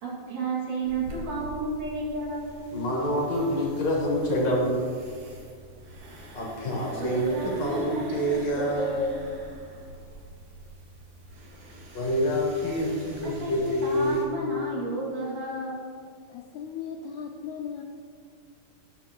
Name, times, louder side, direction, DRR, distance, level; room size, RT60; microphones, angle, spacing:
voice 1, 0.0-2.7 7.0-9.3 13.2-15.8, right 2 dB, 65° right, -5 dB, 3.6 m, -32 dB
sound 1, 0.8-14.2, right 1 dB, 85° right, 3.4 m, -46 dB
voice 2, 2.7-4.8 6.3-9.0 11.9-14.3, equal, 55° left, -2 dB, 2.5 m, -27 dB
voice 3, 16.3-17.8, left 7 dB, 75° left, 1 dB, 1.8 m, -37 dB
13.5 x 9.4 x 3.0 m, 2.1 s
omnidirectional pair, 4.0 m